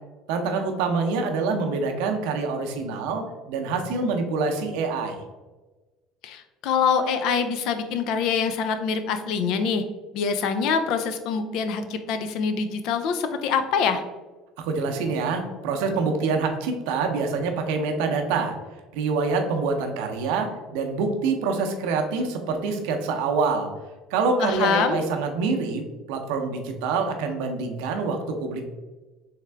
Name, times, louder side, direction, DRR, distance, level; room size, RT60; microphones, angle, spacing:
voice 1, 0.3-5.2 14.6-18.6 18.9-23.7 24.1-28.6, right 4 dB, 85° right, 4 dB, 0.6 m, -26 dB
voice 2, 6.2-9.8 10.1-14.0 24.4-25.0, left 6 dB, 70° left, 9 dB, 0.4 m, -25 dB
3.5 x 3.2 x 3.4 m, 1.2 s
supercardioid pair, 110°, 0 cm